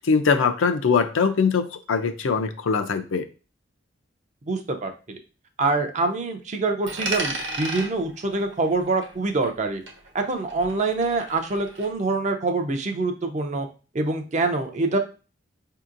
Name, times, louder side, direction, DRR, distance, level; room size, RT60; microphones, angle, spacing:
voice 1, 0.0-3.2, left 5 dB, 80° left, 8 dB, 0.5 m, -22 dB
voice 2, 4.5-5.2 5.6-9.8 10.1-13.7 13.9-15.0, right 3 dB, 35° right, 5 dB, 0.5 m, -25 dB
Coin (dropping), 6.9-9.6 9.9-11.9, right 2 dB, 65° right, 1.0 m, -34 dB
5.1 x 2.8 x 2.5 m, 0.34 s
head